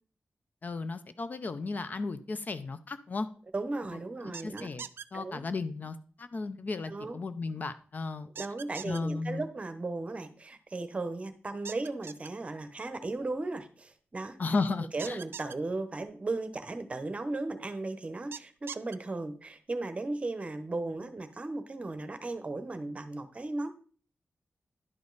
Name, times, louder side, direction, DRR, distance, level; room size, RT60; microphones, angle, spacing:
voice 1, 0.6-3.3 4.2-4.8 5.1-8.3 8.8-9.5 14.4-15.2, left 3 dB, 45° left, 12 dB, 0.5 m, -34 dB
voice 2, 3.5-4.7 5.1-5.4 6.9-7.2 8.4-14.4 14.9-23.7, right 2 dB, 35° right, 10 dB, 0.8 m, -36 dB
sound 1, 4.3-5.1 8.4-9.0 11.7-12.3 15.0-15.6 18.3-19.0, right 7 dB, 80° right, 0.3 m, -41 dB
11.0 x 5.3 x 3.9 m, 0.42 s
wide cardioid pair, 130°, 4 cm